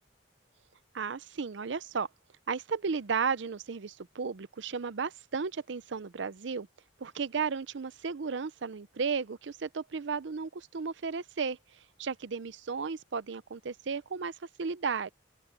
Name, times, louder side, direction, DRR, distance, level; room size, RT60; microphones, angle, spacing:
voice 1, 0.9-2.1 2.5-6.7 7.0-15.1, right 5 dB, 75° right, 0.6 m, -34 dB
open air
head